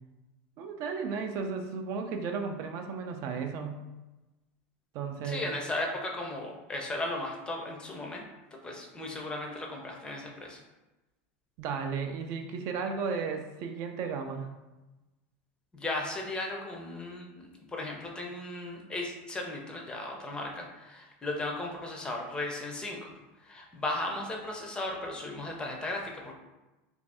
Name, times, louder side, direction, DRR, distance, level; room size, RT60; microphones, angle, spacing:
voice 1, 0.6-3.8 4.9-5.5 11.6-14.5, right 5 dB, 45° right, 5 dB, 0.4 m, -34 dB
voice 2, 5.2-8.2 8.6-10.6 15.7-23.1 23.4-26.3, left 2 dB, 15° left, 1 dB, 0.5 m, -36 dB
3.2 x 2.6 x 3.3 m, 1.1 s
supercardioid pair, 150°, 6 cm